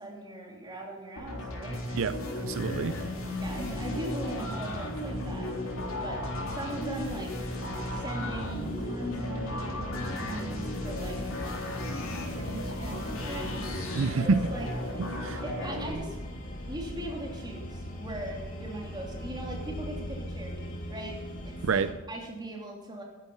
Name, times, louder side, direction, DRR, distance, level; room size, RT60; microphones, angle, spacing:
voice 1, 0.0-2.1 3.4-5.5 6.0-7.5 7.9-11.2 12.3-15.1 15.4-16.2 16.7-21.2 21.4-21.8 22.1-23.0, right 1 dB, 20° right, 3.0 m, -40 dB
sound 1, 1.2-15.9, left 1 dB, 80° left, 3.8 m, -35 dB
voice 2, 1.9-3.0 13.9-14.4 15.0-15.4 21.6-21.9, right 5 dB, 75° right, 0.5 m, -27 dB
sound 2, 2.5-21.9, equal, 40° left, 2.8 m, -40 dB
13.0 x 11.0 x 5.5 m
head